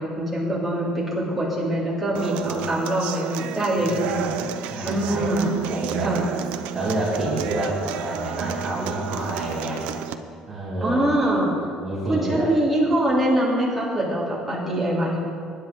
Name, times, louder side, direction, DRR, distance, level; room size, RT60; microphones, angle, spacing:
voice 1, 0.0-4.3 4.8-5.5 6.0-6.2 10.8-11.5 12.1-15.2, right 1 dB, ahead, -8 dB, 3.1 m, -23 dB
Human voice / Acoustic guitar, 2.1-10.1, right 9 dB, 85° right, 0.6 m, -31 dB
voice 2, 3.8-6.1 6.7-9.8 10.5-11.0 11.8-12.5, right 1 dB, 20° right, -7 dB, 2.4 m, -28 dB
20.0 x 10.0 x 3.8 m, 2.3 s
cardioid pair, 165°, 2 cm